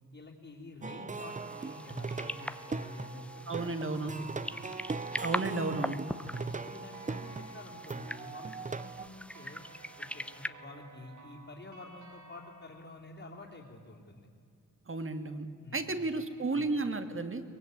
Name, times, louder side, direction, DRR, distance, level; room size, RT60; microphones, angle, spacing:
voice 1, 0.1-4.7 6.2-9.7 10.0-14.3 15.6-16.0 16.5-16.7, left 2 dB, 40° left, -4 dB, 3.4 m, -49 dB
Plucked string instrument, 0.8-9.1, right 4 dB, 25° right, 0.6 m, -40 dB
sound 1, 1.1-10.5, left 1 dB, 5° left, 0.8 m, -42 dB
sound 2, 1.5-12.9, right 3 dB, 65° right, 2.7 m, -56 dB
voice 2, 3.5-4.1 5.2-6.0 14.9-15.5 15.7-17.4, right 3 dB, 40° right, 9 dB, 2.0 m, -33 dB
23.0 x 20.5 x 9.7 m, 2.4 s
wide cardioid pair, 105°, 31 cm